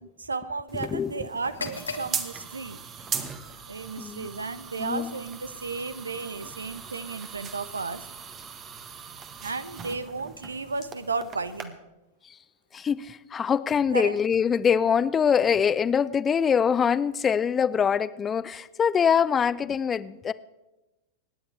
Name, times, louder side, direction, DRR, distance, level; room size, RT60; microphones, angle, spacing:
voice 1, 0.0-2.8 3.7-8.1 9.4-11.8 13.9-14.2, right 4 dB, 75° right, 15 dB, 0.8 m, -34 dB
sound 1, 0.7-11.7, right 6 dB, 30° right, 1.5 m, -39 dB
voice 2, 0.8-1.3 4.0-4.3 4.8-5.1 12.7-20.3, left 7 dB, 20° left, 18 dB, 0.5 m, -24 dB
sound 2, 1.4-9.2, left 4 dB, 75° left, 1.3 m, -45 dB
25.5 x 10.0 x 4.5 m, 1.0 s
figure-of-eight pair, 90°, 0 cm